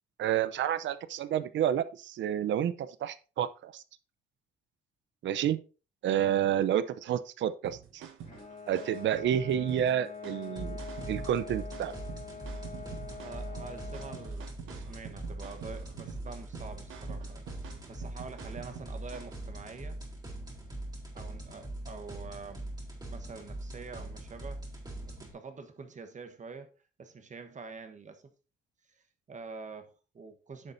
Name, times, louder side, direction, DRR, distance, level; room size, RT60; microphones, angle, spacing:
voice 1, 0.2-3.8 5.2-5.6 6.0-8.1 8.7-10.8 11.1-11.9, right 10 dB, 70° right, 0.7 m, -29 dB
sound 1, 7.6-19.4, right 7 dB, 90° right, 1.2 m, -47 dB
Bowed string instrument, 8.2-14.9, left 5 dB, 40° left, 2.7 m, -45 dB
sound 2, 10.6-25.3, right 1 dB, 20° right, 2.9 m, -42 dB
voice 2, 13.2-20.0 21.1-22.7 23.1-24.6 24.9-26.7 27.0-28.3 29.3-30.7, right 4 dB, 40° right, 1.2 m, -46 dB
10.0 x 6.8 x 2.7 m
cardioid pair, 90°, 20 cm